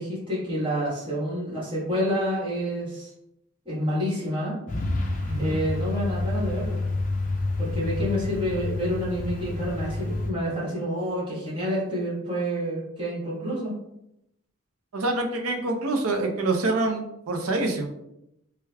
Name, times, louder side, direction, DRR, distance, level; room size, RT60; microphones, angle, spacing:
voice 1, 0.0-3.1 3.6-4.6 5.4-6.8 7.6-13.7, equal, 25° right, -7 dB, 1.3 m, -28 dB
Truck, 4.7-10.3, left 2 dB, 35° left, 0.5 m, -29 dB
voice 2, 14.9-17.9, right 2 dB, 80° right, 3 dB, 0.5 m, -26 dB
4.6 x 2.2 x 2.2 m, 0.83 s
head